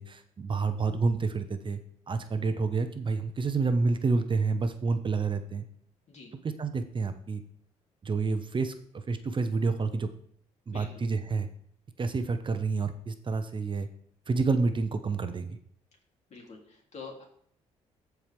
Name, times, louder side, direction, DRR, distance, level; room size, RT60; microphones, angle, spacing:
voice 1, 0.0-1.8 2.1-5.6 6.6-7.4 8.0-10.1 10.7-11.5 12.0-13.9 14.3-15.6, right 4 dB, 35° right, 9 dB, 0.8 m, -29 dB
voice 2, 10.7-11.0 16.3-17.2, left 4 dB, 55° left, 0 dB, 3.0 m, -46 dB
14.0 x 4.7 x 3.5 m, 0.64 s
supercardioid pair, 70°, 14 cm